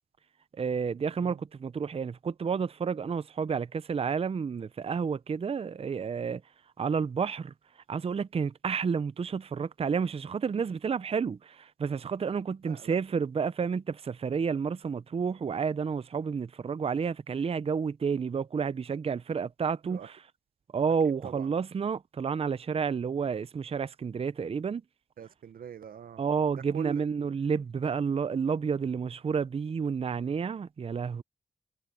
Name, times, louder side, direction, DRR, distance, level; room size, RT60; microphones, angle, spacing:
voice 1, 0.5-6.4 6.8-7.5 7.9-20.3 20.7-24.8 26.2-31.2, right 6 dB, 45° right, 0.4 m, -30 dB
voice 2, 12.6-12.9 19.8-20.1 21.2-21.5 25.2-26.2 26.5-27.0, right 8 dB, 90° right, 0.7 m, -42 dB
wide cardioid pair, 75°, 14 cm